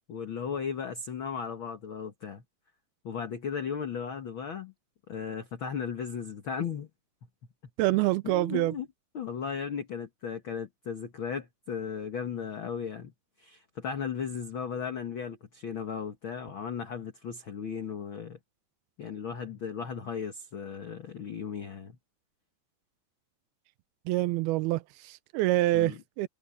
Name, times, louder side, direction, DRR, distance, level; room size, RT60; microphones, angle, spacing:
voice 1, 0.1-2.4 3.0-4.7 5.1-6.9 8.2-8.9 9.1-13.1 13.4-18.4 19.0-22.0 25.7-26.0, left 6 dB, 55° left, 1.4 m, -36 dB
voice 2, 7.8-8.7 24.1-26.3, right 17 dB, 90° right, 2.6 m, -26 dB
omnidirectional pair, 4.4 m